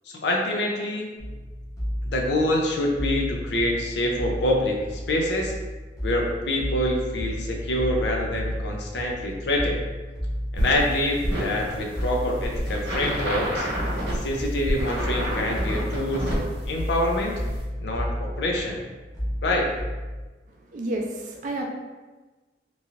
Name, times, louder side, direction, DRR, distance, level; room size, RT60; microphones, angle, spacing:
voice 1, 0.1-1.1 2.0-5.5 6.0-9.8 10.5-13.7 14.1-17.4 17.8-18.8 19.4-19.8, left 1 dB, 70° left, 0 dB, 0.5 m, -26 dB
sound 1, 1.2-20.2, equal, 20° left, 0.8 m, -32 dB
sound 2, 10.6-17.6, equal, 65° right, 1.0 m, -29 dB
voice 2, 20.7-21.6, right 1 dB, 45° right, 0 dB, 0.4 m, -30 dB
3.0 x 2.8 x 2.5 m, 1.2 s
head